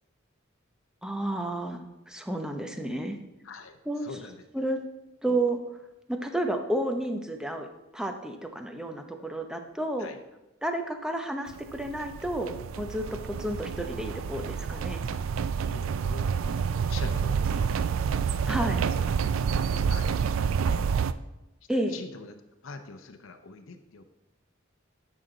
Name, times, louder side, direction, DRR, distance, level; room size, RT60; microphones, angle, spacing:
voice 1, 1.0-1.8 2.1-3.2 3.9-4.1 4.5-4.8 5.2-5.6 6.1-10.1 10.6-15.1 18.5-18.8 21.7-21.9, right 1 dB, 5° right, 5 dB, 0.7 m, -31 dB
voice 2, 3.4-4.4 10.0-10.2 15.1-15.2 15.7-17.7 18.8-19.1 19.6-20.9 21.7-22.3 22.6-24.0, left 4 dB, 75° left, 6 dB, 0.7 m, -44 dB
sound 1, 11.5-21.1, right 6 dB, 80° right, 0.4 m, -28 dB
10.5 x 6.3 x 3.9 m, 0.94 s
head